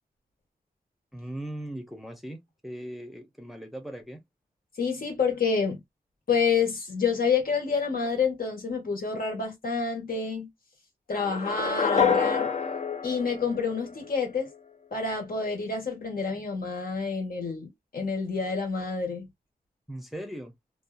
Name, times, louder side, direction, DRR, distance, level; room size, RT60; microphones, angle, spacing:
voice 1, 1.1-4.2 19.9-20.5, right 1 dB, ahead, 0.6 m, -39 dB
voice 2, 4.8-5.8 6.3-10.5 11.1-12.5 13.0-14.5 14.9-19.3, left 5 dB, 70° left, 1.2 m, -28 dB
sound 1, 11.1-14.2, left 6 dB, 45° left, 0.6 m, -27 dB
2.8 x 2.3 x 2.2 m
wide cardioid pair, 90°, 16 cm